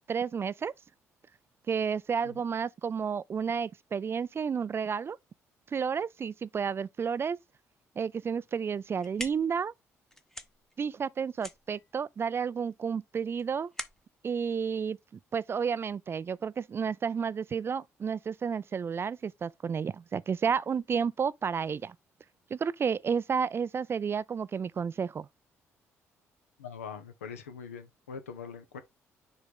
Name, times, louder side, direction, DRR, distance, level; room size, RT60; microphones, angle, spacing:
voice 1, 0.1-0.7 1.7-5.2 5.7-7.4 8.0-9.7 10.8-13.7 14.2-15.0 15.3-21.9 22.5-25.3, right 6 dB, 30° right, 0.3 m, -31 dB
sound 1, 8.7-15.6, left 1 dB, 5° left, 0.8 m, -46 dB
voice 2, 26.6-28.8, left 6 dB, 80° left, 0.7 m, -43 dB
6.6 x 4.0 x 3.5 m
figure-of-eight pair, 45°, 8 cm